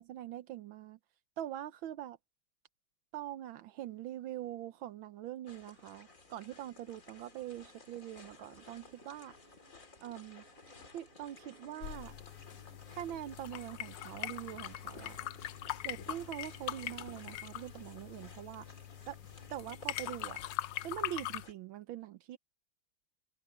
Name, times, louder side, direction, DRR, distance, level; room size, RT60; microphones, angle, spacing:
voice 1, 0.1-1.0 1.4-2.2 3.1-9.3 10.0-10.4 10.9-12.1 12.9-15.2 15.8-18.7 19.1-19.2 19.5-20.4 20.8-22.4, right 12 dB, 85° right, 1.6 m, -43 dB
Insect, 3.5-20.2, right 9 dB, 55° right, 3.3 m, -66 dB
sound 1, 5.5-21.5, left 4 dB, 40° left, 3.0 m, -56 dB
sound 2, 11.8-21.5, left 14 dB, 70° left, 1.2 m, -42 dB
open air
omnidirectional pair, 2.1 m